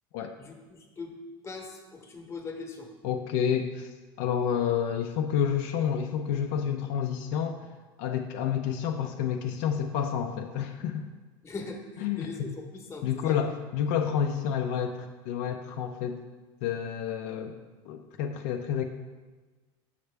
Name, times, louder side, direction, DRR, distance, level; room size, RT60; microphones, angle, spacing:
voice 1, 0.3-1.1 1.4-2.9 11.4-13.4, left 4 dB, 20° left, 2 dB, 1.0 m, -41 dB
voice 2, 3.0-3.9 4.2-7.7 8.0-11.1 12.0-12.6 13.0-16.2 16.6-17.5 17.9-18.8, left 8 dB, 70° left, 4 dB, 0.5 m, -29 dB
6.7 x 5.7 x 3.3 m, 1.3 s
supercardioid pair, 120°, 12 cm